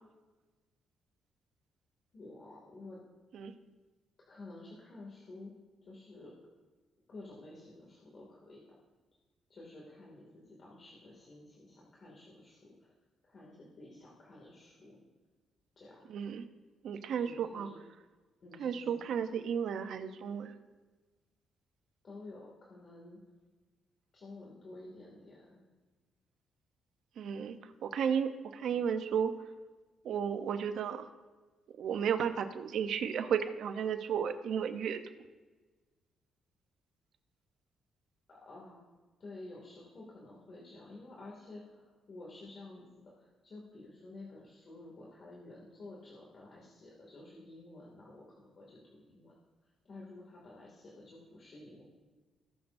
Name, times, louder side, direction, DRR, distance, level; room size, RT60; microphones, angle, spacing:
voice 1, 2.1-3.0 4.3-5.5 5.8-6.3 7.1-8.6 9.5-12.9 13.3-15.0 15.8-16.0 17.2-17.8 18.4-19.2 22.0-23.2 24.1-25.6 38.3-38.8 39.2-42.9 43.2-49.3 49.8-51.8, left 2 dB, 45° left, -4 dB, 2.4 m, -51 dB
voice 2, 16.1-16.4 16.8-17.7 18.6-20.5 27.2-27.6 27.8-29.3 30.0-31.1 31.8-35.0, right 7 dB, 70° right, 9 dB, 0.8 m, -33 dB
18.5 x 6.9 x 2.7 m, 1.3 s
cardioid pair, 90°, 0 cm